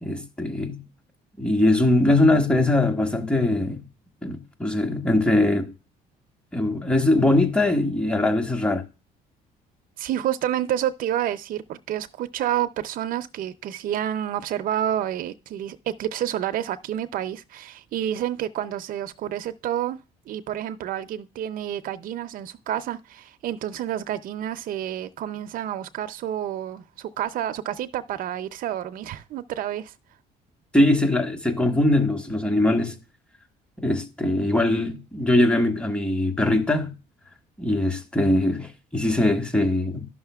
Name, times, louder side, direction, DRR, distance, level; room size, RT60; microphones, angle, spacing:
voice 1, 0.0-0.8 1.4-3.8 4.2-5.7 6.5-8.8 30.7-33.0 33.8-36.9 37.6-40.1, left 1 dB, 5° left, 1.3 m, -21 dB
voice 2, 10.0-20.0 20.3-29.9, right 11 dB, 55° right, 0.5 m, -29 dB
12.0 x 5.6 x 2.3 m
cardioid pair, 110°, 17 cm